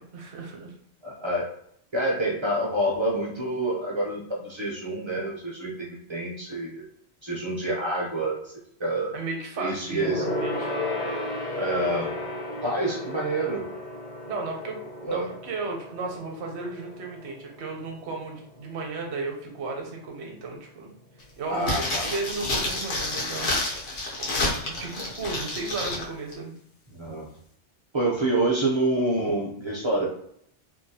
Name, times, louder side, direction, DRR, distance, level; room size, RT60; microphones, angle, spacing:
voice 1, 0.1-0.7 8.8-10.8 14.2-20.9 21.4-23.8 24.2-26.5, right 3 dB, 65° right, 2 dB, 0.9 m, -35 dB
voice 2, 1.0-1.5 1.9-6.8 7.2-8.5 8.8-9.2 9.6-10.2 11.5-12.1 12.6-13.7 15.0-15.3 21.5-22.1 26.9-27.3 27.9-30.1, right 1 dB, 40° right, -3 dB, 0.4 m, -27 dB
Gong, 10.0-19.8 20.1-20.3 20.6-20.7, left 1 dB, 45° left, 0.6 m, -34 dB
sound 1, 21.6-26.1 26.3-26.4, left 2 dB, 75° left, 1.1 m, -29 dB
2.7 x 2.3 x 2.7 m, 0.69 s
omnidirectional pair, 1.2 m